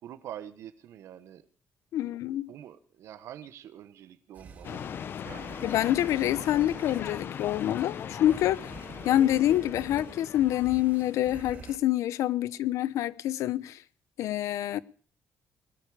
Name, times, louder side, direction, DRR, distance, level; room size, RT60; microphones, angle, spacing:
voice 1, 0.0-1.5 2.0-2.2 2.5-4.8 5.2-5.5 12.4-12.6, right 11 dB, 70° right, 1.2 m, -46 dB
voice 2, 1.9-2.5 5.6-8.7 9.0-13.8 14.2-14.8, left 13 dB, 80° left, 0.8 m, -26 dB
sound 1, 4.4-11.8, right 5 dB, 30° right, 3.0 m, -47 dB
sound 2, 4.6-11.7, left 8 dB, 45° left, 0.8 m, -40 dB
20.0 x 13.5 x 4.9 m
cardioid pair, 160°, 5 cm